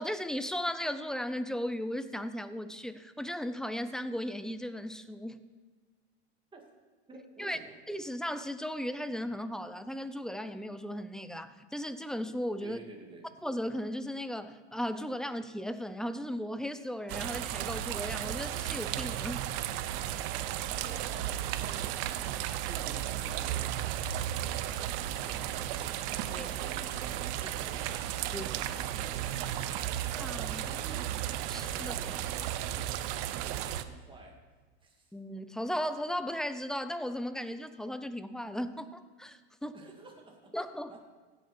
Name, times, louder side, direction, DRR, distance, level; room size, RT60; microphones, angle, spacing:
voice 1, 0.0-5.4 7.4-7.6 7.9-12.8 13.4-19.5 26.4-26.5 27.4-27.5 28.3-28.5 29.0-29.1 30.1-30.6 31.5-32.2 35.1-39.7 40.5-40.9, equal, ahead, 11 dB, 0.5 m, -36 dB
voice 2, 7.1-7.8 12.6-13.3 20.8-27.9 28.2-30.0 30.6-34.4 34.8-35.1 39.7-40.5 40.9-41.0, right 3 dB, 15° right, -1 dB, 2.6 m, -51 dB
sound 1, 17.1-33.8, right 12 dB, 60° right, 0.8 m, -34 dB
16.0 x 6.7 x 5.3 m, 1.5 s
hypercardioid pair, 110°, 33 cm